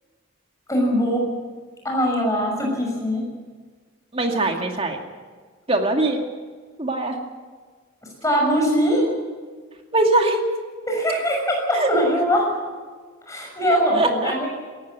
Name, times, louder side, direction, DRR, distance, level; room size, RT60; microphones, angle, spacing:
voice 1, 0.7-1.3 1.8-3.2 8.2-9.1 10.9-12.5 13.3-14.5, equal, 15° left, 0 dB, 6.2 m, -21 dB
voice 2, 4.1-5.0 5.7-6.2 6.8-7.2 9.9-10.4 11.8-11.9 13.7-14.3, right 2 dB, 30° right, 3 dB, 2.3 m, -21 dB
18.5 x 14.5 x 9.5 m, 1.5 s
head